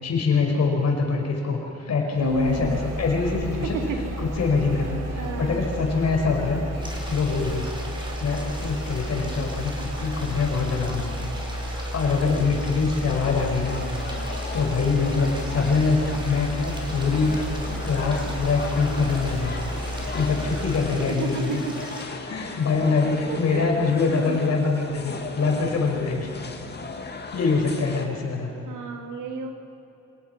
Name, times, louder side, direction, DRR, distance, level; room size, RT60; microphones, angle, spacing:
voice 1, 0.0-3.8 4.2-7.7 8.2-11.3 11.7-13.8 14.5-19.7 20.1-21.6 22.3-26.3 27.1-28.5, left 4 dB, 60° left, 1 dB, 5.4 m, -24 dB
sound 1, 2.1-21.1, equal, 60° right, 5.4 m, -32 dB
voice 2, 2.2-2.8 3.7-4.0 5.1-5.7 21.1-21.4 23.3-23.7 24.0-24.4 28.7-29.5, right 2 dB, 85° right, 4 dB, 2.6 m, -30 dB
sound 2, 6.8-22.0, equal, 15° right, 5.2 m, -41 dB
sound 3, 13.6-28.1, left 4 dB, 35° left, 2.2 m, -37 dB
26.5 x 18.5 x 5.9 m, 2.8 s
cardioid pair, 90°, 30 cm